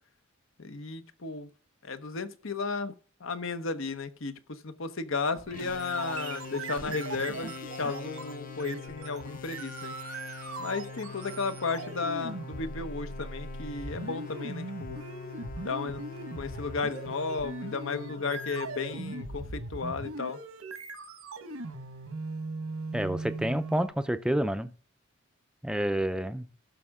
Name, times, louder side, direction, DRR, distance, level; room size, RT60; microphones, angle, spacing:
voice 1, 0.6-1.5 1.8-2.9 3.2-9.9 10.6-15.0 15.6-16.0 16.4-20.4, left 4 dB, 70° left, 0.9 m, -34 dB
sound 1, 5.3-23.9, right 3 dB, 90° right, 1.4 m, -40 dB
sound 2, 5.5-20.1, left 5 dB, 40° left, 0.6 m, -44 dB
voice 2, 22.9-24.7 25.6-26.5, right 1 dB, 5° right, 0.5 m, -29 dB
15.5 x 6.3 x 3.6 m
head